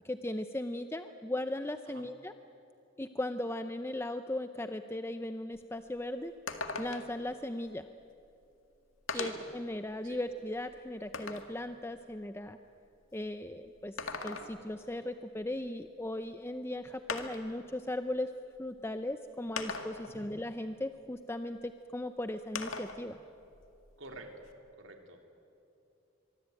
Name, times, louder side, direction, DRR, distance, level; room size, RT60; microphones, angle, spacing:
voice 1, 0.0-2.3 3.0-6.3 6.8-7.9 9.1-12.6 13.1-18.3 18.6-23.2, left 1 dB, 10° left, 9 dB, 0.5 m, -37 dB
sound 1, 5.5-5.6 6.0-6.1 6.5-7.2 8.3-8.4 9.1-9.6 10.1-11.6 13.8-14.8 16.2-16.3 17.1-17.6 18.6-18.7 19.6-20.2 22.6-23.0 23.4-24.5, left 4 dB, 75° left, 2.0 m, -39 dB
voice 2, 24.0-24.3 24.8-25.2, right 2 dB, 70° right, 4 dB, 3.1 m, -47 dB
24.5 x 23.5 x 9.0 m, 2.7 s
head